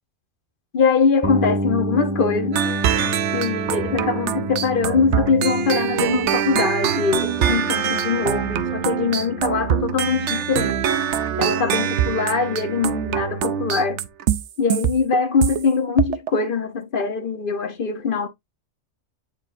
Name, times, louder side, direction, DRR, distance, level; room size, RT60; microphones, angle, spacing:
voice 1, 0.7-2.6 3.3-10.9 11.4-14.0 14.6-18.3, left 5 dB, 45° left, 1.1 m, -22 dB
sound 1, 1.2-10.9, right 1 dB, 10° right, 1.2 m, -31 dB
sound 2, 2.5-15.6 16.0-16.3, right 9 dB, 70° right, 0.9 m, -24 dB
9.2 x 4.3 x 2.6 m
omnidirectional pair, 1.3 m